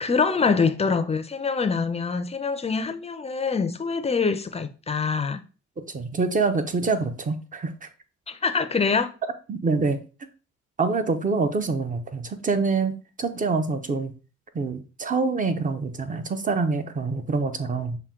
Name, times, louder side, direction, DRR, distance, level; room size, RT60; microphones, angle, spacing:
voice 1, 0.0-5.4 8.3-9.1, left 5 dB, 20° left, 0.5 m, -24 dB
voice 2, 5.9-7.9 9.5-10.0 10.8-12.9 13.2-14.1 14.5-18.0, right 4 dB, 25° right, 0.6 m, -25 dB
5.6 x 2.2 x 3.6 m
cardioid pair, 90°, 30 cm